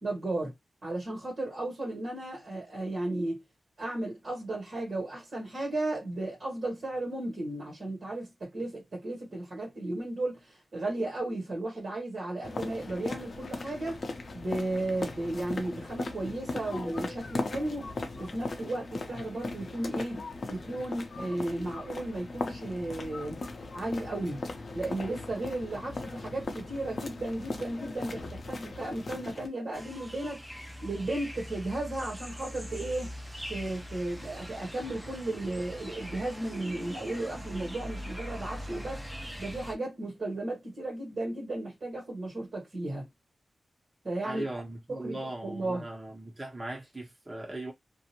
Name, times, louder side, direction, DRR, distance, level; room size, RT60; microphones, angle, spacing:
voice 1, 0.0-0.5 0.8-3.4 3.8-14.0 14.3-17.9 18.2-20.2 20.5-23.4 23.7-24.4 24.7-33.1 33.5-39.0 39.4-43.1 44.0-44.5 44.9-45.8, right 2 dB, 60° right, 1.2 m, -34 dB
sound 1, 12.4-29.5, left 3 dB, 60° left, 0.6 m, -38 dB
sound 2, 29.7-39.8, equal, 5° right, 0.7 m, -42 dB
voice 2, 44.2-47.7, right 1 dB, 30° right, 1.1 m, -39 dB
2.5 x 2.0 x 2.9 m
cardioid pair, 70°, 0 cm